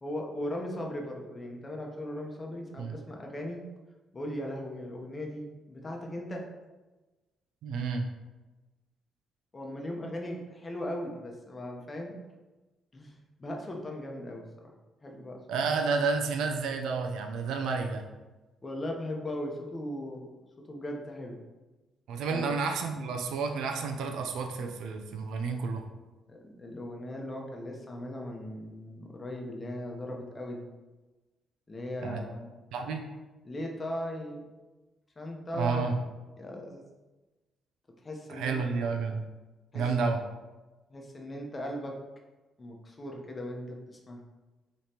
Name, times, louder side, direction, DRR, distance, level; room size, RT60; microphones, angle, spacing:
voice 1, 0.0-3.6 4.1-6.4 9.5-12.2 12.9-14.7 15.0-15.4 18.6-20.4 20.7-21.4 22.3-22.5 26.3-30.7 31.7-32.5 32.8-32.9 33.4-34.5 35.2-36.0 36.4-36.9 38.0-38.9 39.7-39.8 40.9-42.0 42.6-44.2, left 1 dB, 30° left, 1 dB, 0.8 m, -38 dB
voice 2, 7.6-8.1 15.5-18.0 22.1-25.8 32.0-32.2 32.7-33.0 35.5-36.0 38.3-39.2 39.7-40.2, right 4 dB, 85° right, 4 dB, 0.5 m, -30 dB
5.1 x 3.1 x 2.9 m, 1.2 s
cardioid pair, 90°, 0 cm